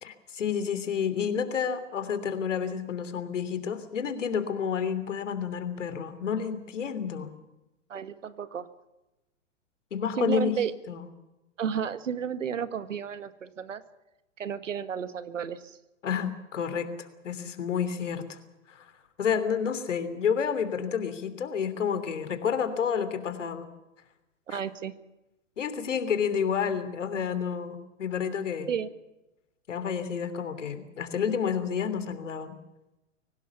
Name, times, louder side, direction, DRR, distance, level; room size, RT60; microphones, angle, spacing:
voice 1, 0.0-7.3 9.9-10.6 10.9-11.1 16.0-18.4 18.7-18.9 19.2-23.7 24.5-24.6 25.6-28.7 29.7-32.6, left 7 dB, 70° left, 12 dB, 3.2 m, -30 dB
voice 2, 7.9-8.7 10.2-10.7 11.6-13.8 14.4-15.8 24.5-24.9 28.7-28.9, right 7 dB, 75° right, 14 dB, 1.8 m, -32 dB
24.5 x 18.0 x 7.1 m, 0.96 s
figure-of-eight pair, 110°, 38 cm